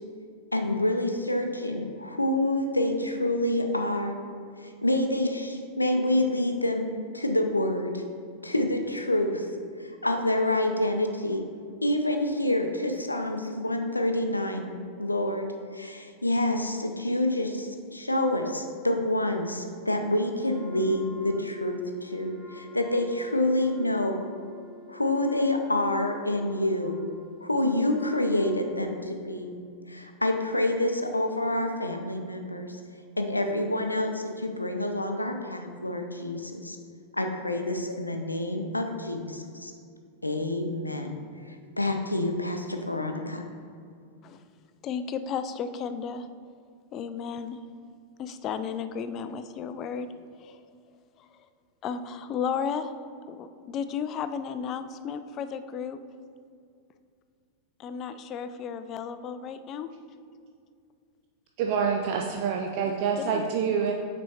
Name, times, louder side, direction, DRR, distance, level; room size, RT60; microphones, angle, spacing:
voice 1, 0.5-4.2 4.6-8.0 8.4-9.5 9.8-11.4 11.8-24.2 24.9-27.0 27.4-29.5 29.9-32.8 33.2-36.8 37.1-39.7 40.2-41.2 41.5-43.4, left 1 dB, 85° left, 5 dB, 0.5 m, -27 dB
Wind instrument woodwind instrument, 20.5-29.3, left 1 dB, ahead, 0.8 m, -48 dB
voice 2, 44.8-46.3 46.9-47.6 48.2-50.1 50.4-50.6 51.2-51.4 51.8-52.9 53.3-56.0 57.8-59.9 63.3-63.4, left 7 dB, 35° left, 11 dB, 0.4 m, -33 dB
voice 3, 61.6-63.9, right 6 dB, 45° right, 1 dB, 0.4 m, -26 dB
6.2 x 4.3 x 4.1 m, 2.3 s
figure-of-eight pair, 90°, 0 cm